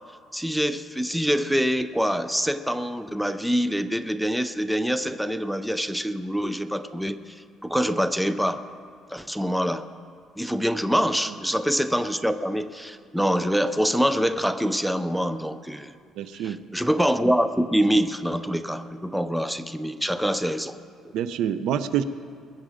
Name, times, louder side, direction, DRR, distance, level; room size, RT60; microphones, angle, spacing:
voice 1, 0.3-8.7 9.1-9.9 10.4-15.9 16.3-20.8 21.0-21.1, equal, ahead, 11 dB, 0.4 m, -25 dB
voice 2, 16.2-16.6 21.1-22.0, right 9 dB, 75° right, 13 dB, 0.6 m, -26 dB
21.0 x 8.9 x 5.0 m, 2.2 s
cardioid pair, 145°, 0 cm